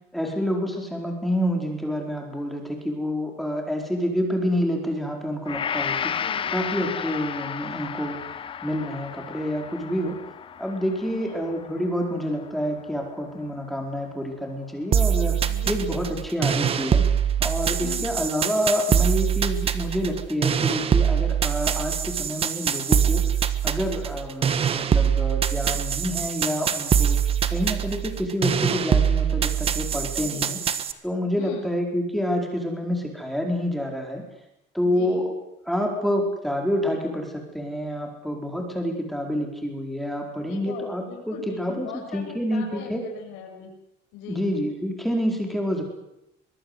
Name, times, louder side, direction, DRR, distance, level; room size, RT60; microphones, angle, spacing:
voice 1, 0.1-6.1 6.5-8.1 8.6-10.2 10.6-15.4 15.7-17.1 17.4-23.2 23.6-27.2 27.5-30.6 31.0-34.2 34.7-35.3 35.7-43.0 44.3-45.8, equal, ahead, 2 dB, 4.5 m, -28 dB
Gong, 5.4-13.8 14.2-14.4, left 7 dB, 25° left, 0.8 m, -33 dB
voice 2, 6.1-7.1 11.1-11.5 15.5-16.1 17.8-18.1 30.2-30.6 31.3-31.7 34.8-35.2 40.3-43.7 44.1-44.5, left 7 dB, 85° left, 1 dB, 7.1 m, -41 dB
sound 1, 14.9-30.9, right 8 dB, 30° right, 1.4 m, -23 dB
24.0 x 22.0 x 8.1 m, 0.84 s
cardioid pair, 165°, 20 cm